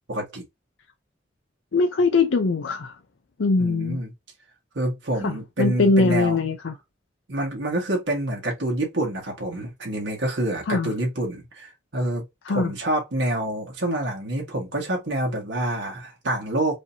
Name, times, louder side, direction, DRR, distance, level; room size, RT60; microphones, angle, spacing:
voice 1, 0.1-0.4 3.6-4.1 4.7-6.4 7.3-16.8, right 1 dB, 80° right, 1.6 m, -27 dB
voice 2, 1.7-3.0 3.4-4.0 5.2-6.7 10.7-10.9 12.4-12.7, left 3 dB, 90° left, 0.5 m, -22 dB
5.0 x 2.9 x 2.7 m
head